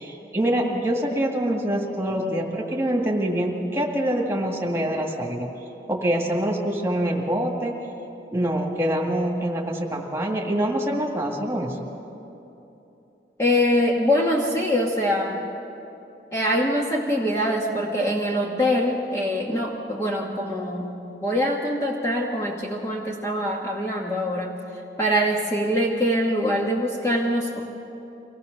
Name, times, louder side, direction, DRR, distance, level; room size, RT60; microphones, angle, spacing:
voice 1, 0.0-5.5 5.9-7.8 8.3-11.9, right 1 dB, 15° right, 0 dB, 2.0 m, -25 dB
voice 2, 13.4-15.4 16.3-24.6 25.0-27.6, equal, 15° left, -2 dB, 1.3 m, -24 dB
24.5 x 17.5 x 6.6 m, 3.0 s
head